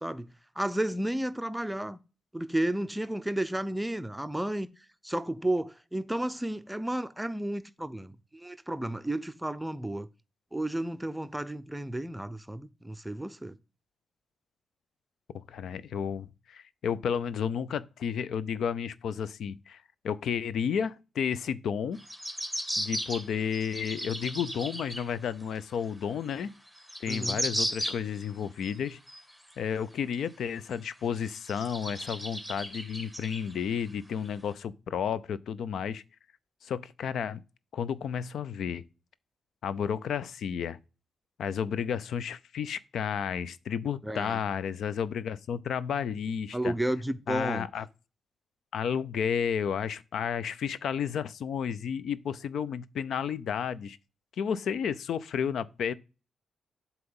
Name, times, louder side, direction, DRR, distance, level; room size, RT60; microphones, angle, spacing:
voice 1, 0.0-2.0 2.3-4.7 5.0-10.1 10.5-13.6 27.1-27.4 44.0-44.4 46.5-47.7, right 1 dB, 10° right, 0.5 m, -32 dB
voice 2, 15.3-22.0 22.8-26.5 27.0-29.0 29.6-36.0 36.6-37.4 37.7-38.8 39.6-40.8 41.4-46.7 47.3-47.9 48.7-54.0 54.4-55.9, left 7 dB, 70° left, 0.4 m, -32 dB
sound 1, 22.0-25.1 25.6-25.7 26.4-26.5 26.7-28.3 28.6-29.5 30.1-30.2 30.7-30.8 31.3-33.8 34.3-34.4, equal, 5° left, 1.8 m, -35 dB
7.7 x 3.0 x 5.3 m
supercardioid pair, 55°, 0 cm